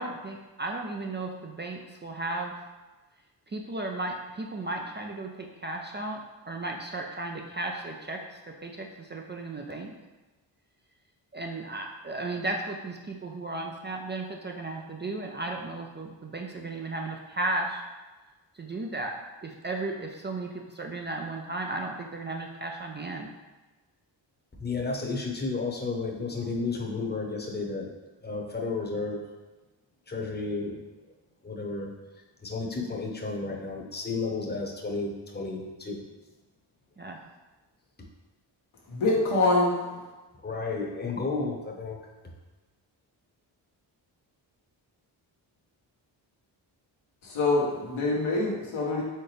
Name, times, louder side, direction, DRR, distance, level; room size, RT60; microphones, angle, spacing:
voice 1, 0.0-2.5 3.5-6.2 6.5-9.9 11.3-17.8 18.5-19.1 19.4-23.3 37.0-37.2, right 2 dB, 25° right, 1 dB, 0.4 m, -35 dB
voice 2, 24.6-27.9 28.2-29.2 30.1-30.8 31.4-31.9 32.4-36.0 40.4-42.0, left 3 dB, 20° left, 0 dB, 0.9 m, -32 dB
voice 3, 38.9-39.8 47.2-49.0, left 2 dB, 80° left, -3 dB, 1.2 m, -25 dB
4.4 x 3.6 x 3.3 m, 1.2 s
cardioid pair, 55°, 47 cm